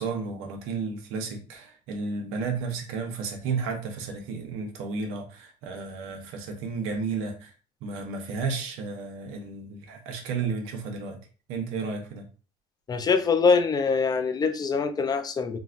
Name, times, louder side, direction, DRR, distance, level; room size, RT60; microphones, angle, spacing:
voice 1, 0.0-7.5 7.8-11.2 11.5-12.3, right 4 dB, 75° right, 0.8 m, -32 dB
voice 2, 12.9-15.6, left 5 dB, 20° left, 0.3 m, -23 dB
3.8 x 2.2 x 2.4 m
cardioid pair, 115°, 21 cm